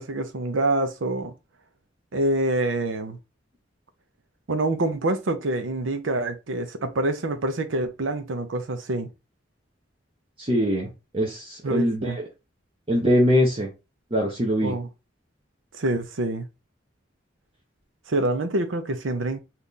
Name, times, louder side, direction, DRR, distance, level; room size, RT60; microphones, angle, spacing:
voice 1, 0.0-1.3 2.1-3.2 4.5-9.1 11.6-12.2 14.6-14.9 15.7-16.5 18.1-19.4, right 2 dB, 85° right, 0.6 m, -26 dB
voice 2, 10.4-12.2 12.9-13.7 14.1-14.7, equal, 30° right, 0.7 m, -22 dB
2.9 x 2.5 x 3.6 m
head